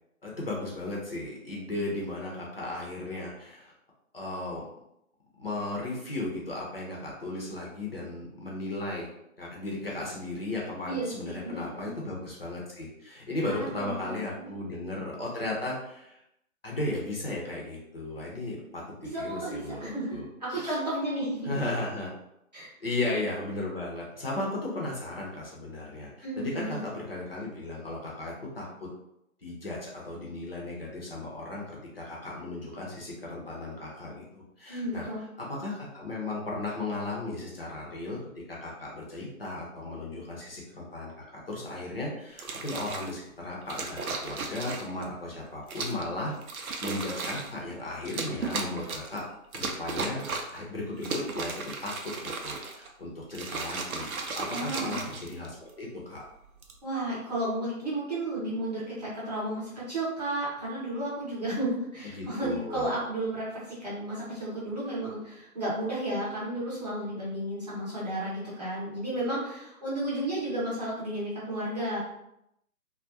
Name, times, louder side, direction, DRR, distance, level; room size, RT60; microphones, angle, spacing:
voice 1, 0.2-3.7 4.1-4.6 5.4-9.1 9.4-16.2 16.6-18.8 19.2-20.8 21.5-22.1 22.8-28.9 29.4-35.1 35.5-38.2 38.5-46.3 46.7-49.2 49.5-50.2 50.5-51.9 52.2-56.2 62.1-62.9, left 2 dB, 45° left, -3 dB, 0.6 m, -35 dB
voice 2, 10.9-11.9 13.4-14.5 19.0-21.5 22.5-22.7 26.2-26.8 34.7-35.2 54.5-55.1 56.8-72.0, right 1 dB, 30° right, -8 dB, 0.7 m, -33 dB
sound 1, 42.3-43.1 43.7-45.0 45.7-46.1 46.4-47.5 48.0-49.2 49.5-50.6 51.0-52.9 53.3-55.7 56.4-56.8, right 4 dB, 75° right, 0.6 m, -35 dB
2.3 x 2.0 x 2.7 m, 0.81 s
figure-of-eight pair, 160°, 43 cm